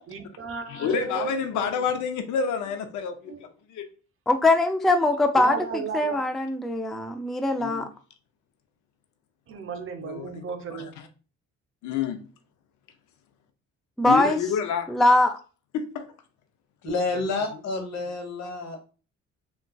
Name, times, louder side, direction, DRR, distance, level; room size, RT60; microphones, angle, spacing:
voice 1, 0.1-1.9 3.3-3.4 5.4-6.3 9.5-10.9, right 5 dB, 45° right, 0.6 m, -34 dB
voice 2, 0.7-3.3 3.7-3.9 7.6-7.9 10.0-10.3 10.7-11.1 11.8-12.2 14.0-15.0 15.7-16.1 18.4-18.5, left 7 dB, 80° left, 0.6 m, -28 dB
voice 3, 4.3-7.9 14.0-14.4 14.9-15.4, left 2 dB, ahead, 0.3 m, -22 dB
voice 4, 16.8-18.9, left 3 dB, 65° left, 1.2 m, -29 dB
3.6 x 2.2 x 2.3 m
cardioid pair, 70°, 29 cm